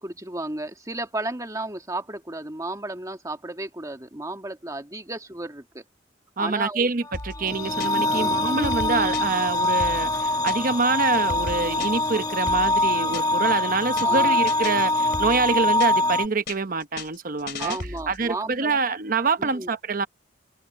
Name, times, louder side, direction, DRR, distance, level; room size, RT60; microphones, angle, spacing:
voice 1, 0.0-5.8 6.4-6.9 8.0-8.4 14.0-14.4 17.6-18.8 19.4-19.7, right 2 dB, 20° right, 2.0 m, -33 dB
voice 2, 6.4-17.8 18.1-20.1, right 4 dB, 50° right, 0.9 m, -26 dB
sound 1, 7.1-8.2 8.5-10.8 11.1-13.5 13.8-14.2 14.5-16.2 16.5-18.3, left 3 dB, 65° left, 2.8 m, -36 dB
sound 2, 7.2-16.3, left 2 dB, 20° left, 1.5 m, -23 dB
head